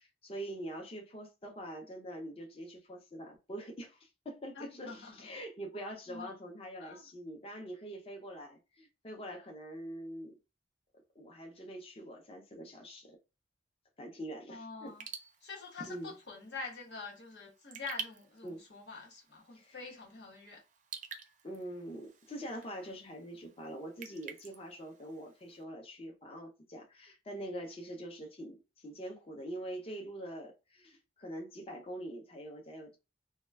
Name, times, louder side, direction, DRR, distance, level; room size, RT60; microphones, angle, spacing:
voice 1, 0.0-10.4 11.1-13.2 14.0-14.9 15.8-16.2 18.4-18.6 19.5-19.9 21.4-33.0, right 1 dB, 35° left, 0.6 m, -44 dB
voice 2, 4.6-5.2 6.1-6.3 6.8-7.0 14.5-15.0 15.4-20.6, left 4 dB, 80° left, 1.0 m, -46 dB
Raindrop / Drip, 14.9-25.6, right 6 dB, 45° right, 0.4 m, -50 dB
2.2 x 2.2 x 3.3 m
head